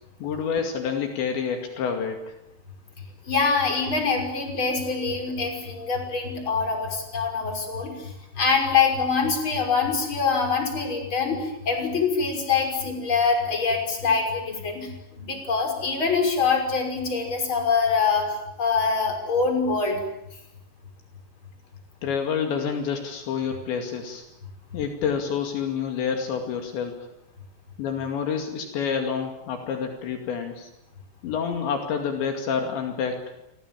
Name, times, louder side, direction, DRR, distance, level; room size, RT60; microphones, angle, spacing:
voice 1, 0.2-2.3 22.0-24.2 24.7-27.1 27.8-30.7 31.2-33.4, left 6 dB, 70° left, 4 dB, 4.6 m, -28 dB
voice 2, 3.2-20.0, left 5 dB, 25° left, 3 dB, 6.3 m, -24 dB
29.5 x 25.5 x 7.4 m, 0.85 s
omnidirectional pair, 5.4 m